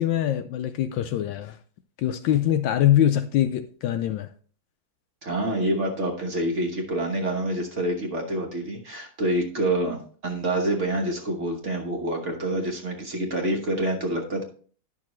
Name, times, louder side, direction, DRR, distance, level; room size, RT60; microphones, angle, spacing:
voice 1, 0.0-1.6 2.0-4.3, left 11 dB, 75° left, 1.2 m, -23 dB
voice 2, 5.2-14.4, right 1 dB, 40° right, 1.3 m, -27 dB
10.0 x 6.1 x 3.1 m
omnidirectional pair, 2.2 m